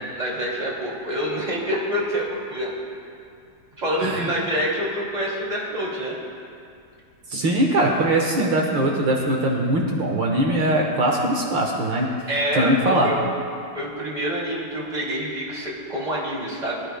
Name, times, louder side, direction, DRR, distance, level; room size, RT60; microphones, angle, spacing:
voice 1, 0.1-2.7 3.8-6.1 12.3-13.1 13.7-16.8, equal, 20° right, -5 dB, 2.7 m, -26 dB
voice 2, 7.3-12.1 12.6-13.1, right 1 dB, 70° right, 0 dB, 2.0 m, -21 dB
24.0 x 13.0 x 2.3 m, 2.4 s
omnidirectional pair, 2.2 m